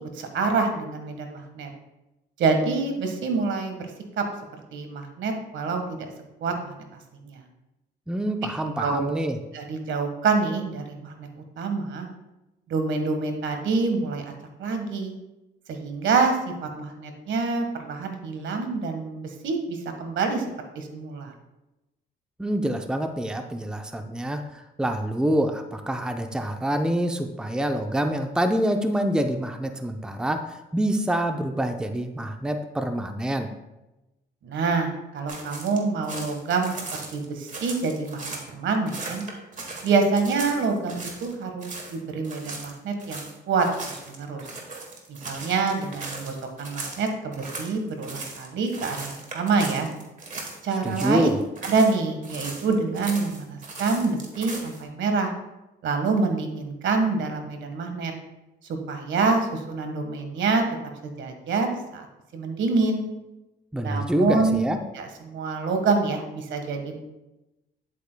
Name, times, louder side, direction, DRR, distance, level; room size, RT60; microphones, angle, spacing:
voice 1, 0.1-1.7 2.4-3.9 4.2-4.3 4.7-6.0 6.4-6.7 7.2-7.4 8.8-9.2 9.5-11.3 11.6-12.1 12.7-14.2 14.6-15.1 15.7-20.4 20.7-21.3 34.4-36.7 37.1-39.2 39.8-44.4 45.1-49.9 50.6-51.3 51.6-55.3 55.8-58.1 58.7-60.6 61.0-62.1 62.3-63.0 63.8-64.7 64.9-67.0, right 4 dB, 70° right, 5 dB, 1.5 m, -26 dB
voice 2, 8.1-9.4 22.4-33.5 50.8-51.4 63.7-64.8, right 1 dB, 5° right, 6 dB, 0.6 m, -26 dB
sound 1, 35.3-38.5 38.9-41.3 41.6-42.0 42.2-50.6 50.9-52.0 52.2-54.8, right 3 dB, 40° right, 1.8 m, -38 dB
10.5 x 8.3 x 2.3 m, 0.99 s
cardioid pair, 90°, 20 cm